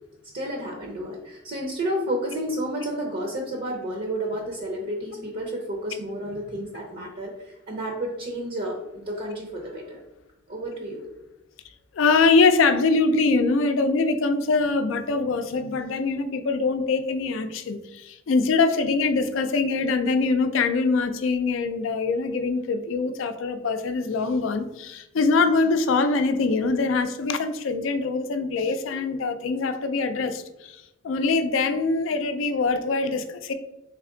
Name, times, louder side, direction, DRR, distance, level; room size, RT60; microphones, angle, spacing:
voice 1, 0.3-10.0 10.5-11.0, right 1 dB, 50° right, 0.6 m, -31 dB
voice 2, 11.9-30.7 31.0-33.5, left 4 dB, 75° left, 0.4 m, -23 dB
3.5 x 3.3 x 3.7 m
head